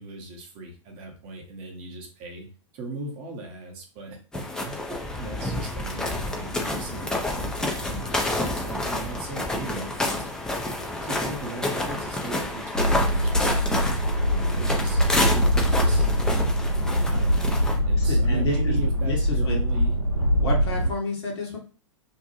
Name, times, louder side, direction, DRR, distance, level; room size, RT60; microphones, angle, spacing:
voice 1, 0.0-2.5 2.7-10.3 10.8-13.7 14.3-16.1 16.9-17.6 17.8-19.9, right 3 dB, 30° right, 1 dB, 0.8 m, -38 dB
sound 1, 4.3-17.8, left 1 dB, 5° left, 0.4 m, -29 dB
sound 2, 12.7-20.9, equal, 80° left, 0.9 m, -23 dB
voice 2, 18.0-19.6 20.4-21.6, left 2 dB, 55° left, -1 dB, 1.1 m, -31 dB
2.6 x 2.2 x 2.8 m, 0.36 s
figure-of-eight pair, 100°, 16 cm